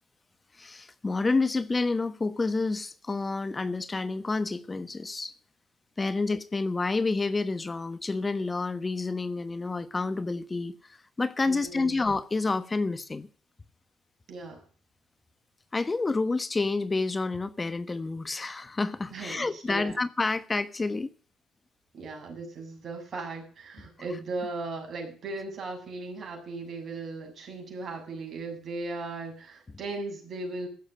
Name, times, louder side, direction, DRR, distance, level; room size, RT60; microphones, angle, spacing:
voice 1, 0.5-5.3 6.0-13.3 15.7-21.1, left 3 dB, 25° left, 1.2 m, -29 dB
voice 2, 11.4-12.0 14.3-14.6 19.1-20.0 21.9-30.7, right 3 dB, 50° right, 6.8 m, -37 dB
15.5 x 7.3 x 7.5 m
hypercardioid pair, 55°, 0 cm